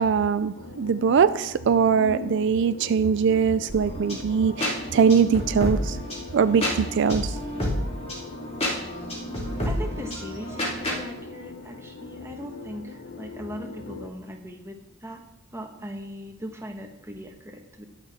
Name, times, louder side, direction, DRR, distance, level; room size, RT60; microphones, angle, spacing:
voice 1, 0.0-6.0 6.3-7.3, right 6 dB, 65° right, 12 dB, 0.4 m, -22 dB
sound 1, 0.5-14.1, left 4 dB, 85° left, 0.8 m, -41 dB
sound 2, 3.7-11.0, equal, 35° left, 2.7 m, -30 dB
voice 2, 9.6-14.8 15.0-15.2 15.5-17.8, equal, 15° right, 3 dB, 1.2 m, -39 dB
20.0 x 6.6 x 3.5 m, 0.91 s
head